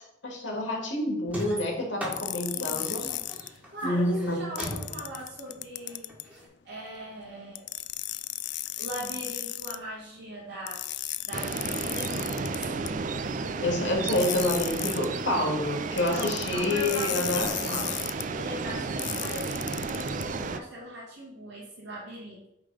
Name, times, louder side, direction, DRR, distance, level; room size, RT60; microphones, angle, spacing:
voice 1, 0.2-3.1 3.8-4.5 13.6-18.0, left 1 dB, 75° left, 0 dB, 2.2 m, -28 dB
sound 1, 1.3-6.5, equal, 5° right, 1.7 m, -39 dB
sound 2, 2.1-3.5 4.6-6.3 7.5-9.8 10.7-12.9 14.1-15.1 16.0-18.2 19.0-20.2, left 16 dB, 60° left, 0.3 m, -35 dB
voice 2, 2.5-6.1 6.6-7.6 8.8-10.8 11.2-13.0 16.0-22.5, equal, 70° right, -7 dB, 2.3 m, -40 dB
sound 3, 11.3-20.6, right 4 dB, 40° right, 0.4 m, -33 dB
8.7 x 3.8 x 4.9 m, 0.78 s
head